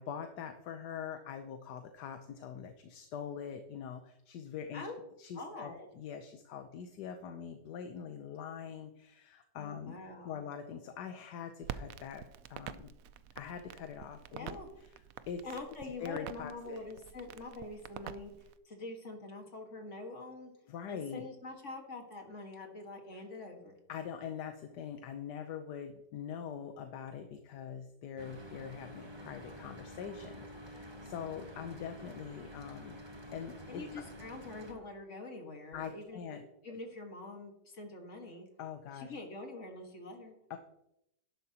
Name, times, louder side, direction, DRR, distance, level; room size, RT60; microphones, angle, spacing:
voice 1, 0.0-4.9 5.2-10.0 10.2-12.2 12.5-12.9 13.4-14.6 15.3-15.4 16.0-16.8 20.7-21.3 23.1-23.2 23.9-33.0 33.3-34.0 35.7-36.4 36.7-36.8 38.6-39.1 40.5-40.6, left 8 dB, 70° left, 7 dB, 1.3 m, -43 dB
voice 2, 5.3-5.9 9.6-10.4 14.3-14.7 15.4-18.3 18.7-20.5 20.9-23.8 33.7-38.5 39.0-40.4, left 2 dB, 45° left, 2 dB, 1.9 m, -45 dB
Crackle, 11.6-18.6, right 10 dB, 70° right, 0.8 m, -47 dB
Mechanical fan, 28.2-34.7, equal, 20° right, 0.9 m, -49 dB
11.5 x 11.0 x 2.9 m, 0.81 s
omnidirectional pair, 1.9 m